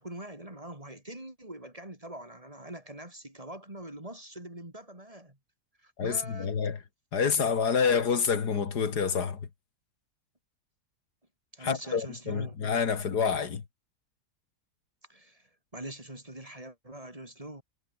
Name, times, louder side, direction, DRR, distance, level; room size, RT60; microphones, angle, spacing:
voice 1, 0.0-5.4 5.8-6.5 11.5-12.6 15.1-17.6, right 1 dB, 20° right, 4.1 m, -44 dB
voice 2, 6.0-6.8 7.1-9.5 11.6-13.6, left 6 dB, 80° left, 2.5 m, -28 dB
omnidirectional pair, 1.7 m